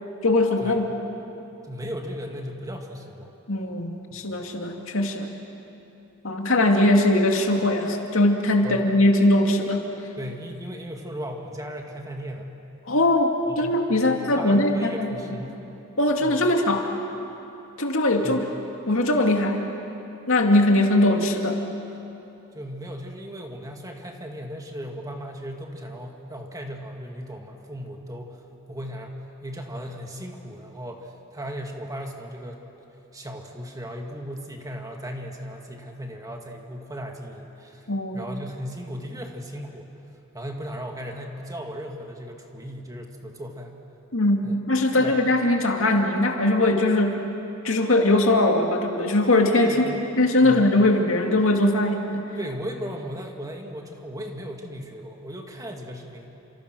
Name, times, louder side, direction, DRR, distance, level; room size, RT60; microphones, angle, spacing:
voice 1, 0.2-0.9 3.5-5.3 6.2-9.9 12.9-15.2 16.0-16.9 17.8-18.5 18.9-19.6 20.3-21.6 37.9-38.3 44.1-47.2 47.6-52.3, left 1 dB, 70° left, 2 dB, 2.4 m, -21 dB
voice 2, 1.7-3.3 4.1-4.4 8.6-8.9 10.2-12.5 13.5-15.6 16.2-16.6 18.2-18.4 22.5-29.2 29.4-32.6 33.1-39.9 40.3-43.8 44.4-44.6 44.9-45.3 49.6-50.0 50.4-50.7 52.4-56.4, equal, 15° right, 2 dB, 2.3 m, -36 dB
30.0 x 27.0 x 6.3 m, 3.0 s
head